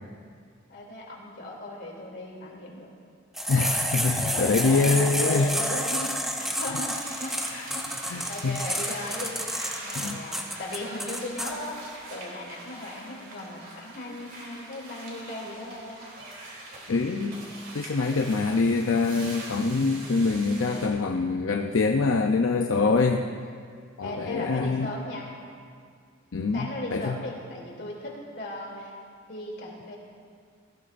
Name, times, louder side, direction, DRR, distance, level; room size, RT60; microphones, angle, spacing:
voice 1, 0.7-2.9 4.2-11.8 12.1-16.0 24.0-25.3 26.5-28.9 29.3-30.0, left 1 dB, 55° left, -2 dB, 2.9 m, -37 dB
sound 1, 3.4-11.5, equal, ahead, 0.8 m, -29 dB
voice 2, 3.5-5.5 7.5-7.7 8.1-8.6 10.0-10.2 16.9-17.4 17.7-23.3 24.0-24.9 26.3-27.2, left 4 dB, 80° left, 3 dB, 0.6 m, -25 dB
sound 2, 6.6-20.9, right 2 dB, 45° right, 3.0 m, -43 dB
19.5 x 15.5 x 2.6 m, 2.1 s
head